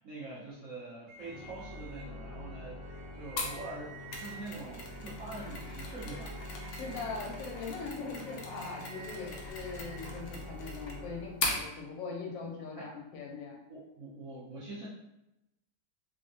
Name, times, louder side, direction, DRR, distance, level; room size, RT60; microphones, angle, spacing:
voice 1, 0.0-6.4 12.8-12.9 13.7-14.9, right 2 dB, 60° right, -10 dB, 0.9 m, -44 dB
Organ, 1.1-11.9, left 1 dB, 10° left, 0.6 m, -46 dB
sound 1, 1.1-2.0 2.8-4.5 5.8-7.1 8.4-10.0, right 5 dB, 85° right, 1.5 m, -52 dB
Mechanisms, 3.4-11.7, left 3 dB, 70° left, 0.9 m, -40 dB
voice 2, 6.7-13.6, left 4 dB, 90° left, -1 dB, 1.3 m, -41 dB
3.4 x 2.0 x 2.6 m, 0.89 s
omnidirectional pair, 2.0 m